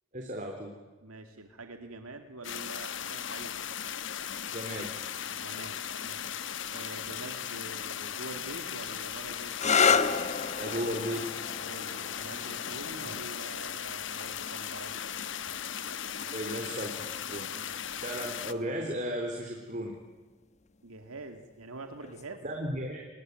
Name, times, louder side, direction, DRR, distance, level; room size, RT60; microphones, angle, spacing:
voice 1, 0.1-0.7 4.5-4.9 10.6-11.3 13.0-13.1 16.3-17.5 18.0-19.9 22.4-23.1, equal, 35° right, 2 dB, 3.4 m, -35 dB
voice 2, 1.0-3.5 5.3-6.3 6.7-9.5 11.5-15.0 16.2-16.9 17.5-17.7 20.8-22.4, right 2 dB, 90° right, 6 dB, 2.3 m, -46 dB
sound 1, 2.4-18.5, left 8 dB, 60° left, 1.1 m, -37 dB
sound 2, 9.5-17.0 18.0-18.5 22.0-22.4, left 6 dB, 30° left, 1.1 m, -32 dB
28.0 x 21.0 x 9.2 m, 1.3 s
head